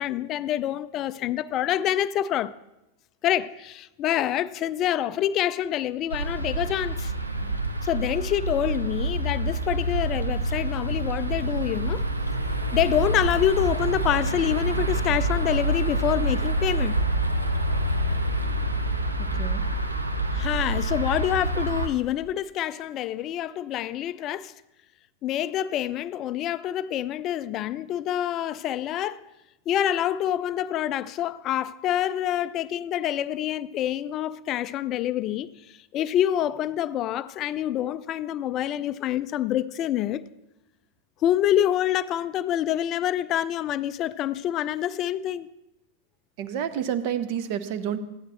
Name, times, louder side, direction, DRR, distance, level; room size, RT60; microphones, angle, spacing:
voice 1, 0.0-2.5 3.2-7.1 7.8-12.0 12.7-17.0 20.3-24.5 25.2-29.2 29.7-40.3 41.2-45.5, left 11 dB, 35° left, 0.3 m, -26 dB
sound 1, 6.1-21.9, right 2 dB, 85° right, 0.8 m, -27 dB
sound 2, 8.0-21.8, left 3 dB, 20° left, 1.2 m, -36 dB
voice 2, 19.2-19.6 46.4-48.0, right 9 dB, 45° right, 0.7 m, -29 dB
13.0 x 9.6 x 4.1 m
figure-of-eight pair, 90°, 0 cm